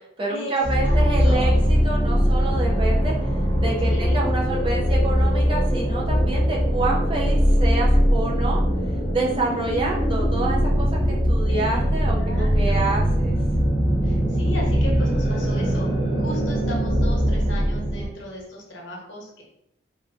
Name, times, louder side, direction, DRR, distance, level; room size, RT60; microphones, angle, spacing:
voice 1, 0.2-3.1 3.6-8.6 9.1-13.4, right 3 dB, 30° right, -2 dB, 0.4 m, -28 dB
sound 1, 0.6-18.1, equal, 30° left, 0.6 m, -21 dB
voice 2, 0.8-1.6 3.8-4.2 11.5-13.0 14.0-19.4, left 1 dB, 85° left, -2 dB, 0.7 m, -37 dB
sound 2, 9.1-14.3, equal, 90° right, 0.8 m, -38 dB
2.4 x 2.1 x 2.5 m, 0.78 s
head